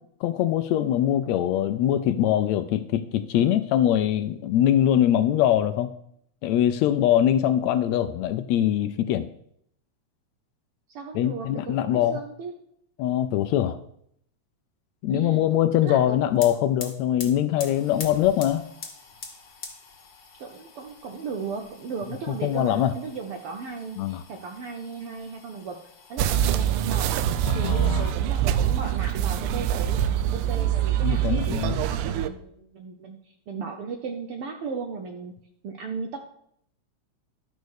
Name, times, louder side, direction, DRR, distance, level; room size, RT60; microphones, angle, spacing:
voice 1, 0.2-5.9 6.4-9.3 11.1-12.2 13.0-13.8 15.0-18.6 22.4-22.9 24.0-24.2 27.4-28.1 31.0-31.8, left 11 dB, 80° left, 11 dB, 1.7 m, -23 dB
voice 2, 10.9-12.5 15.1-15.4 15.8-16.2 20.4-25.8 26.1-27.1 27.5-35.3 35.6-36.2, right 5 dB, 70° right, 4 dB, 1.3 m, -36 dB
sound 1, 16.0-16.1 16.3-28.3 28.7-29.5 29.7-30.7, left 5 dB, 45° left, 1.6 m, -45 dB
sound 2, 26.2-32.3, right 11 dB, 90° right, 2.1 m, -24 dB
11.5 x 5.2 x 6.3 m, 0.70 s
omnidirectional pair, 3.4 m